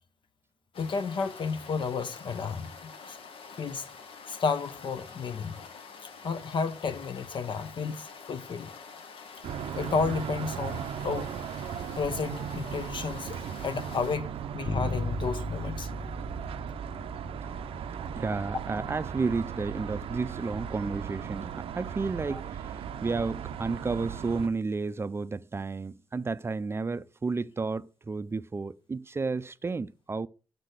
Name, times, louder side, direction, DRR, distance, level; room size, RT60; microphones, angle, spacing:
sound 1, 0.7-14.2, left 5 dB, 75° left, 1.0 m, -47 dB
voice 1, 0.8-3.2 3.6-3.9 4.3-5.6 6.0-8.7 9.8-11.3 12.0-15.9 22.3-22.4, left 5 dB, 60° left, 0.7 m, -32 dB
sound 2, 9.4-24.5, right 9 dB, 80° right, 0.5 m, -37 dB
Bass guitar, 14.6-24.3, equal, 15° left, 0.8 m, -40 dB
voice 2, 18.1-30.3, right 4 dB, 25° right, 0.4 m, -32 dB
6.5 x 4.0 x 6.5 m
cardioid pair, 75°, 10 cm